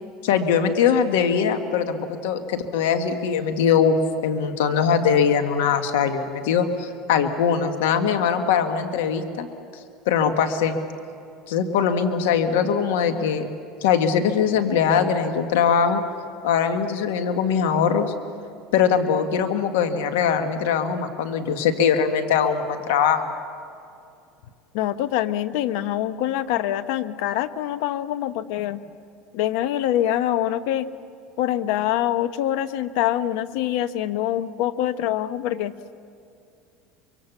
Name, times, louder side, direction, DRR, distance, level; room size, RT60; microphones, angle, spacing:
voice 1, 0.2-4.0 4.2-9.5 10.1-10.8 11.5-13.5 13.8-16.0 16.4-18.1 18.7-23.3, left 7 dB, 90° left, 7 dB, 1.7 m, -21 dB
voice 2, 24.7-28.8 29.3-30.9 31.4-35.7, left 12 dB, 75° left, 12 dB, 1.0 m, -24 dB
25.0 x 23.0 x 7.2 m, 2.5 s
supercardioid pair, 120°, 0 cm